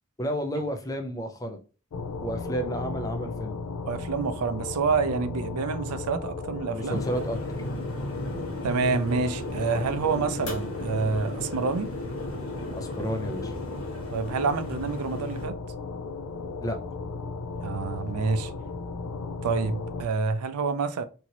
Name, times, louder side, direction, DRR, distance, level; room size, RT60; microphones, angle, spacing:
voice 1, 0.2-1.6 2.2-3.6 6.7-7.4 12.7-13.5 16.6-16.8, equal, 15° left, 0.4 m, -31 dB
sound 1, 1.9-20.0, left 3 dB, 90° left, 0.4 m, -36 dB
voice 2, 3.9-7.0 8.6-11.9 14.1-15.6 17.6-18.5 19.4-21.0, right 5 dB, 90° right, 0.4 m, -28 dB
sound 2, 6.9-15.5, left 1 dB, 70° left, 1.3 m, -35 dB
2.9 x 2.7 x 2.9 m
head